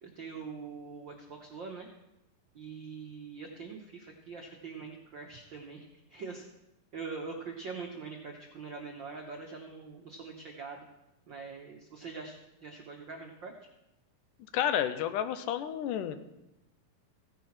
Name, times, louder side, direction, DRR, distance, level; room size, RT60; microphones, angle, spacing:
voice 1, 0.0-1.9 2.5-6.4 6.9-10.9 11.3-13.5, right 4 dB, 70° right, 1 dB, 1.1 m, -43 dB
voice 2, 14.5-16.2, left 10 dB, 80° left, 10 dB, 2.2 m, -30 dB
16.0 x 10.0 x 4.3 m, 0.91 s
omnidirectional pair, 3.8 m